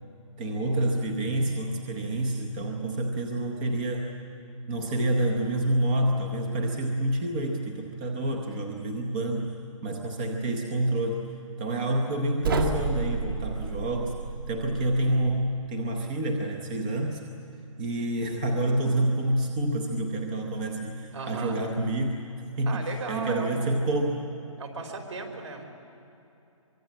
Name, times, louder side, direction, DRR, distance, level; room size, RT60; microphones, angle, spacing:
voice 1, 0.4-4.1 4.7-9.6 9.8-11.3 11.6-14.1 14.5-17.2 17.8-22.3 22.6-24.2, right 1 dB, 15° right, 3 dB, 0.8 m, -28 dB
sound 1, 12.4-15.5, right 4 dB, 40° right, 1.8 m, -31 dB
voice 2, 21.1-21.6 22.7-23.9 24.6-25.7, right 3 dB, 60° right, 3 dB, 4.4 m, -36 dB
24.5 x 23.0 x 8.6 m, 2.9 s
hypercardioid pair, 175°, 18 cm